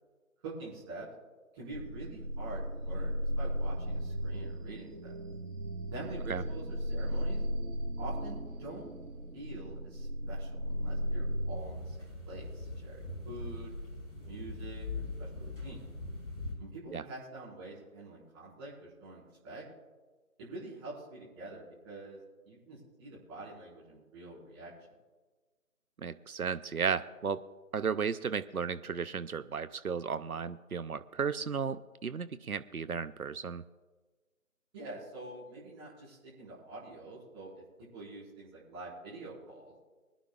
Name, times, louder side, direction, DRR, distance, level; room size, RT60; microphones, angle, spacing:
voice 1, 0.4-1.1 1.5-5.2 5.9-7.4 8.0-8.9 9.3-13.7 14.3-15.8 16.6-19.6 20.4-22.2 22.4-24.7 34.7-37.6 37.9-39.7, right 2 dB, 20° right, -9 dB, 5.0 m, -46 dB
sound 1, 1.7-11.6, equal, 65° right, 3.2 m, -36 dB
sound 2, 11.6-16.5, left 2 dB, 40° left, 5.0 m, -41 dB
voice 2, 26.0-27.4 27.7-33.6, right 6 dB, 85° right, 14 dB, 0.8 m, -34 dB
24.5 x 11.0 x 2.4 m, 1.3 s
figure-of-eight pair, 155°, 43 cm